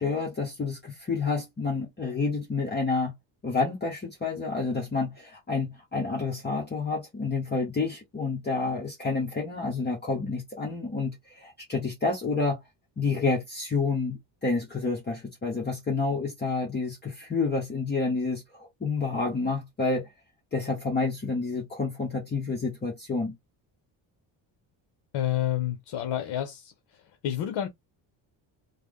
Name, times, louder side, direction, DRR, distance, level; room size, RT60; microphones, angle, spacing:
voice 1, 0.0-3.1 3.4-12.6 13.0-20.1 20.5-23.3, left 4 dB, 20° left, 0.9 m, -29 dB
voice 2, 25.1-26.7 27.2-27.7, left 12 dB, 65° left, 0.7 m, -29 dB
3.3 x 2.1 x 3.6 m
cardioid pair, 160°, 46 cm